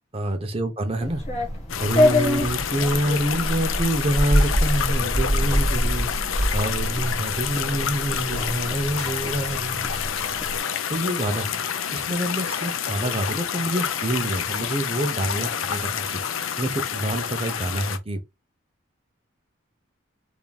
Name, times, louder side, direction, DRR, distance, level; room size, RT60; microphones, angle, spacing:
voice 1, 0.1-1.2 1.8-6.1 6.5-9.9 10.9-11.6 11.9-16.2 16.6-18.2, right 1 dB, 30° right, 0.7 m, -27 dB
sound 1, 1.0-10.6, left 1 dB, 35° left, 1.4 m, -25 dB
sound 2, 1.7-18.0, left 8 dB, 80° left, 0.5 m, -28 dB
3.8 x 3.5 x 2.3 m
head